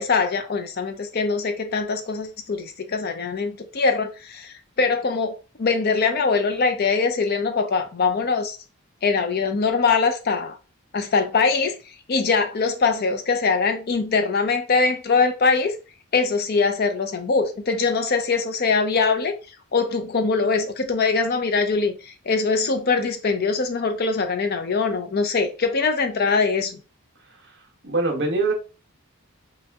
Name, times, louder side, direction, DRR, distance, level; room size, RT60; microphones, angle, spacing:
voice 1, 0.0-8.6 9.0-10.6 10.9-11.7 12.1-15.8 16.1-19.3 19.7-26.8, left 4 dB, 45° left, 0.5 m, -22 dB
voice 2, 27.3-28.5, right 3 dB, 50° right, 0.9 m, -25 dB
3.1 x 2.8 x 3.4 m
head